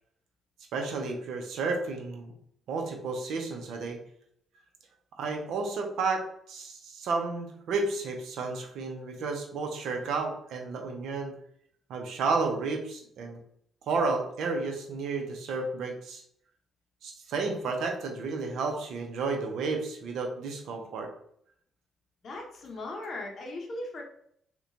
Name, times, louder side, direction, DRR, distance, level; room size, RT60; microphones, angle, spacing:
voice 1, 0.7-2.3 2.7-4.0 5.2-11.3 11.9-13.4 13.9-16.2 17.0-21.1, right 4 dB, 75° right, 3 dB, 0.6 m, -32 dB
voice 2, 22.2-24.0, left 2 dB, 50° left, 1 dB, 0.6 m, -38 dB
2.9 x 2.2 x 2.5 m, 0.66 s
cardioid pair, 90°, 0 cm